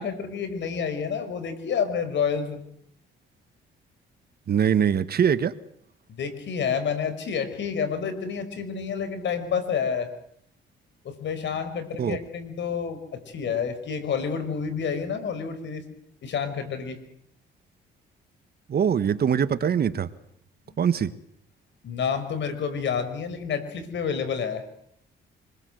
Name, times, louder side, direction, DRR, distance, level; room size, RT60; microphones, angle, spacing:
voice 1, 0.0-2.6 6.1-10.1 11.0-15.8 16.2-17.0 20.7-20.8 21.8-24.6, left 6 dB, 65° left, 10 dB, 5.3 m, -29 dB
voice 2, 4.5-5.5 12.0-12.2 18.7-20.1 20.8-21.1, right 8 dB, 50° right, 13 dB, 1.5 m, -22 dB
26.0 x 21.5 x 8.0 m, 0.68 s
cardioid pair, 90°, 20 cm